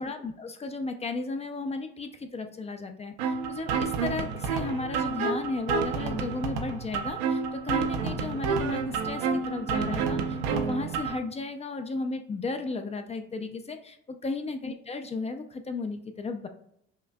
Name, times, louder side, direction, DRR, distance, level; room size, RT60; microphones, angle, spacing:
voice 1, 0.0-16.5, left 3 dB, 20° left, 7 dB, 0.4 m, -34 dB
sound 1, 3.2-11.2, right 5 dB, 70° right, 0.6 m, -29 dB
5.6 x 2.5 x 2.2 m, 0.74 s
supercardioid pair, 80°, 30 cm